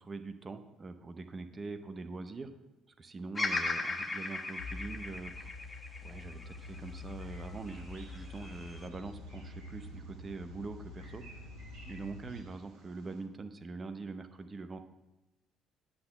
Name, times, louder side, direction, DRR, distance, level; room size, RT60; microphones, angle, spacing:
voice 1, 0.0-2.5 3.0-5.5 6.0-11.4 11.9-14.8, right 3 dB, 35° right, 9 dB, 0.8 m, -43 dB
Bird vocalization bird call bird song, 3.3-7.6 8.1-8.9, left 3 dB, 25° left, 1.2 m, -37 dB
sound 1, 4.6-12.5, left 3 dB, 85° left, 0.7 m, -47 dB
Bird vocalization bird call bird song 2, 6.6-13.2, right 2 dB, 65° right, 2.1 m, -58 dB
9.8 x 3.8 x 7.4 m, 1.0 s
figure-of-eight pair, 50°, 0 cm